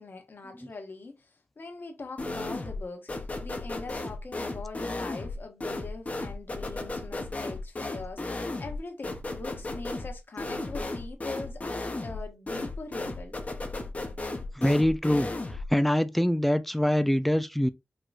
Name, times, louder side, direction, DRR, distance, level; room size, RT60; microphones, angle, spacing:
voice 1, 0.0-13.4, left 3 dB, 55° left, 1.3 m, -42 dB
sound 1, 2.2-2.8 3.1-15.7, left 2 dB, 35° left, 0.9 m, -35 dB
voice 2, 14.6-15.3 15.7-17.7, left 1 dB, 5° left, 0.4 m, -24 dB
4.7 x 3.0 x 2.5 m
wide cardioid pair, 105°, 4 cm